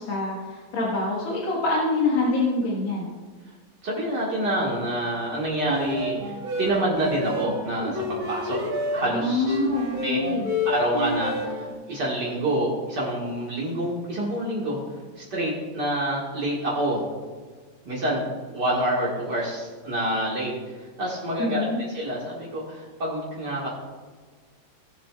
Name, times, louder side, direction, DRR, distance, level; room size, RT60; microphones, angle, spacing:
voice 1, 0.0-3.1 9.1-10.5 21.4-21.8, left 2 dB, 80° left, -4 dB, 2.3 m, -25 dB
voice 2, 3.8-8.6 8.9-9.6 10.0-10.2 10.6-14.8 15.2-17.1 17.9-18.2 18.5-20.5 21.0-23.7, right 1 dB, 60° right, -5 dB, 2.4 m, -27 dB
sound 1, 5.6-11.7, left 1 dB, 85° right, 2.5 m, -29 dB
18.5 x 7.6 x 2.3 m, 1.4 s
omnidirectional pair, 2.1 m